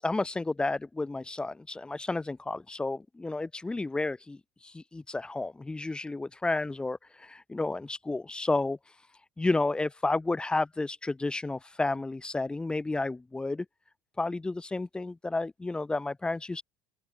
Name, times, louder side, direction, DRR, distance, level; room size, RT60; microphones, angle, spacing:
voice 1, 0.0-4.4 4.6-8.8 9.4-13.7 14.2-16.6, left 2 dB, 10° left, 7.2 m, -31 dB
open air
supercardioid pair, 115°, 7 cm